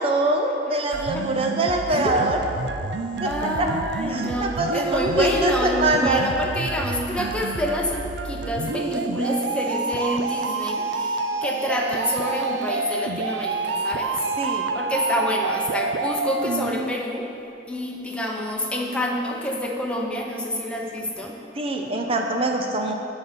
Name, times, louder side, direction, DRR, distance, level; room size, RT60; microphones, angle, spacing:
voice 1, 0.0-2.4 3.2-3.7 4.1-6.2 14.4-14.6 21.6-22.9, right 2 dB, 35° right, 3 dB, 0.6 m, -23 dB
sound 1, 0.9-16.9, right 4 dB, 85° right, 0.4 m, -28 dB
voice 2, 3.2-17.4 17.7-21.4, left 1 dB, 5° left, -1 dB, 0.9 m, -27 dB
10.0 x 4.0 x 6.9 m, 2.7 s
head